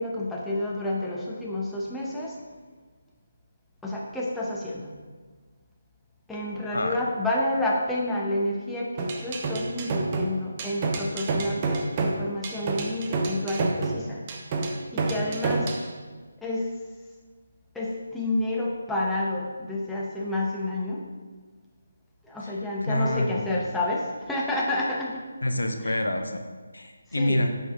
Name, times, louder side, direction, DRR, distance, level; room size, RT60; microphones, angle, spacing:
voice 1, 0.0-2.4 3.8-4.9 6.3-14.2 14.9-15.7 16.4-16.8 17.7-21.1 22.2-25.3 25.8-26.0 27.1-27.5, left 1 dB, 5° left, -5 dB, 0.8 m, -29 dB
sound 1, 9.0-15.9, right 3 dB, 30° right, 0.7 m, -28 dB
voice 2, 22.8-23.5 25.4-26.4 26.7-27.5, left 1 dB, 80° left, 5 dB, 0.8 m, -27 dB
8.7 x 5.5 x 3.6 m, 1.4 s
figure-of-eight pair, 155°, 0 cm